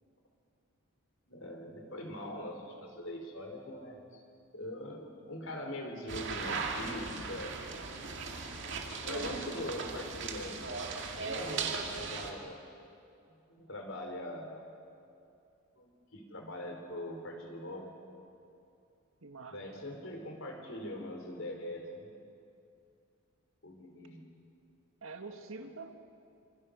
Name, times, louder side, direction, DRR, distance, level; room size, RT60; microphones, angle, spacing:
voice 1, 1.3-4.2 4.5-7.6 9.0-10.8 11.1-12.6 13.3-14.6 15.8-17.9 19.5-22.1 23.6-24.2 25.8-25.9, left 1 dB, 65° left, 3 dB, 4.3 m, -42 dB
sound 1, 6.1-12.3, right 4 dB, 55° right, 2.3 m, -38 dB
voice 2, 19.2-19.9 25.0-25.9, right 3 dB, 70° right, 6 dB, 1.8 m, -46 dB
27.0 x 26.0 x 6.6 m, 2.6 s
head